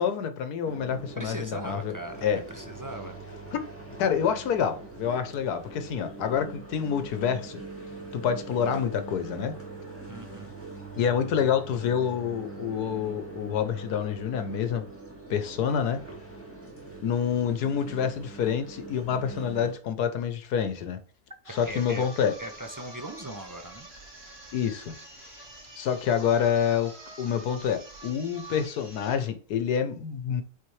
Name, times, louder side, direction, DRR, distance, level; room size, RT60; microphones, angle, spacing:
voice 1, 0.0-1.9 2.2-2.4 3.5-3.6 4.0-7.6 8.1-9.6 11.0-14.8 15.3-16.0 17.0-21.0 21.5-22.3 24.5-25.3 25.8-26.9 27.2-30.4, left 8 dB, 85° left, 1.4 m, -27 dB
sound 1, 0.6-19.7, right 3 dB, 10° left, 2.1 m, -42 dB
voice 2, 1.2-3.2 10.1-10.5 21.6-22.1 22.4-23.9, right 1 dB, 30° right, 0.3 m, -39 dB
sound 2, 21.4-29.3, right 2 dB, 50° right, 2.5 m, -47 dB
8.6 x 4.2 x 3.3 m
omnidirectional pair, 1.6 m